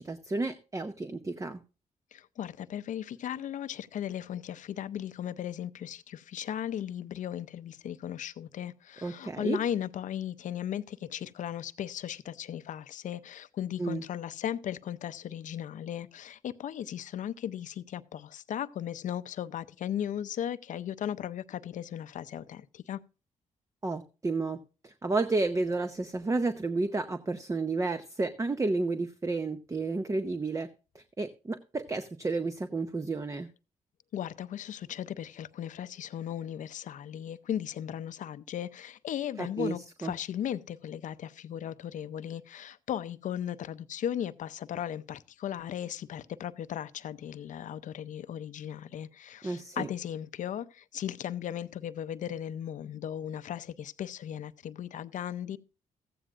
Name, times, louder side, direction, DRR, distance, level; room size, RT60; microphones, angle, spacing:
voice 1, 0.0-1.6 9.0-9.6 13.8-14.0 23.8-24.6 24.8-30.7 30.9-33.5 39.4-39.7 40.0-40.1 49.4-49.9, right 3 dB, 25° right, 0.7 m, -31 dB
voice 2, 2.1-23.0 34.1-55.6, left 10 dB, 70° left, 0.5 m, -36 dB
14.5 x 9.0 x 2.5 m
cardioid pair, 70°, 13 cm